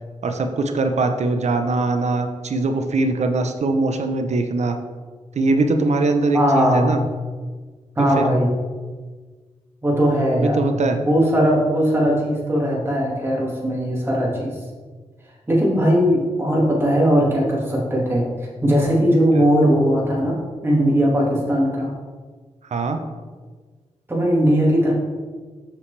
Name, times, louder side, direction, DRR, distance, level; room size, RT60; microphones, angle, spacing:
voice 1, 0.2-4.8 5.3-7.0 8.2-8.3 10.3-11.0 19.3-19.5 22.7-23.0, right 3 dB, 60° right, 6 dB, 0.7 m, -21 dB
voice 2, 6.3-7.0 8.0-8.5 9.8-10.6 10.9-14.6 15.5-18.3 18.6-20.4 20.6-21.9 24.1-24.9, equal, 20° right, -4 dB, 1.9 m, -19 dB
6.9 x 5.6 x 3.3 m, 1.4 s
wide cardioid pair, 90°, 13 cm